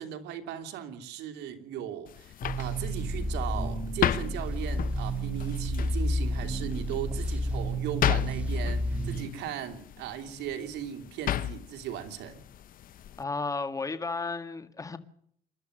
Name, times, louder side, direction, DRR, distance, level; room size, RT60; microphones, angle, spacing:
voice 1, 0.0-12.4, right 10 dB, 85° right, 2.8 m, -37 dB
sound 1, 2.1-13.2, left 11 dB, 55° left, 1.0 m, -35 dB
sound 2, 2.4-9.2, right 1 dB, 10° right, 3.6 m, -31 dB
voice 2, 13.2-15.0, left 3 dB, 20° left, 1.9 m, -33 dB
28.0 x 12.5 x 7.8 m
cardioid pair, 110°, 17 cm